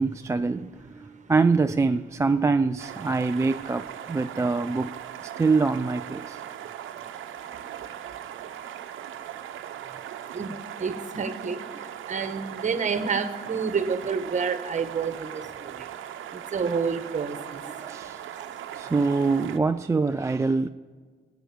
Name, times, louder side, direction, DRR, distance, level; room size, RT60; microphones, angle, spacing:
voice 1, 0.0-5.0 5.4-6.4 17.7-18.2 18.7-20.7, right 4 dB, 15° right, 0.4 m, -24 dB
sound 1, 2.8-19.6, right 10 dB, 80° right, 0.9 m, -39 dB
voice 2, 10.3-15.9 16.3-18.0 18.4-18.5, right 5 dB, 40° right, 1.3 m, -29 dB
13.5 x 9.3 x 8.7 m
cardioid pair, 90°, 20 cm